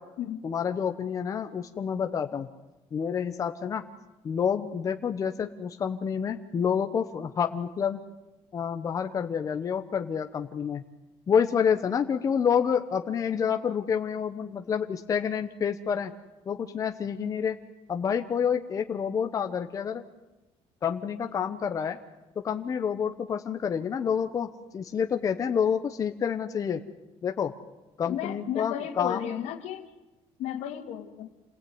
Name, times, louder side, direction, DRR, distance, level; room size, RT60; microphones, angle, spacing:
voice 1, 0.4-2.5 2.9-3.8 4.2-8.0 8.5-10.8 11.3-16.1 16.5-17.6 17.9-20.0 20.8-22.0 22.4-26.8 27.2-27.5 28.0-29.3, left 7 dB, 30° left, 7 dB, 1.0 m, -28 dB
voice 2, 28.0-29.8 30.4-31.3, left 10 dB, 75° left, 7 dB, 2.4 m, -33 dB
28.0 x 19.5 x 9.5 m, 1.1 s
cardioid pair, 175°, 11 cm